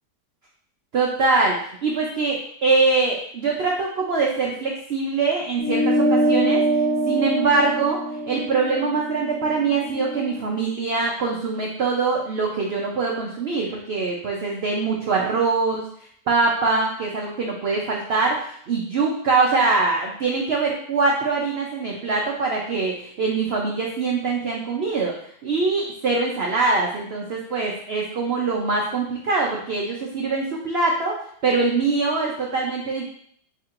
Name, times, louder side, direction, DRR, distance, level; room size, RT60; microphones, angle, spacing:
voice 1, 0.9-6.6 7.1-8.0 8.2-15.9 16.3-25.1 25.4-33.0, right 4 dB, 75° right, -1 dB, 0.5 m, -23 dB
sound 1, 5.6-10.4, right 1 dB, 80° left, 2.5 m, -24 dB
4.7 x 4.3 x 2.5 m, 0.64 s
omnidirectional pair, 1.8 m